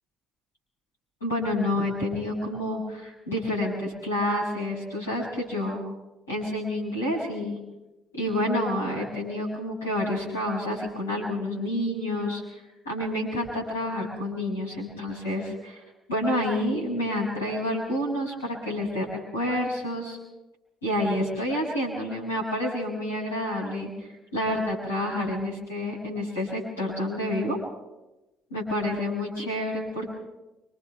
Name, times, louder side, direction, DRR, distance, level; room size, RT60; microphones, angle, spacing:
voice 1, 1.2-5.8 6.3-7.6 8.1-12.4 12.8-15.8 16.1-19.1 19.3-20.2 20.8-23.9 24.3-27.6 28.5-30.1, left 1 dB, 80° left, -4 dB, 6.9 m, -28 dB
29.5 x 25.5 x 3.5 m, 1.0 s
figure-of-eight pair, 50°, 0 cm